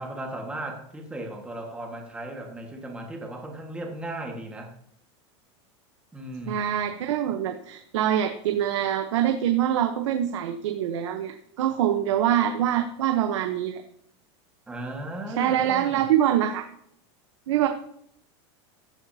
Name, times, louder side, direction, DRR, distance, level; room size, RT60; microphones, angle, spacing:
voice 1, 0.0-4.7 6.1-6.9 14.7-16.1, right 1 dB, 5° right, 1 dB, 1.6 m, -36 dB
voice 2, 6.5-13.8 15.4-16.7 17.5-17.7, right 10 dB, 85° right, 7 dB, 1.0 m, -24 dB
14.5 x 8.2 x 2.8 m, 0.69 s
supercardioid pair, 165°, 15 cm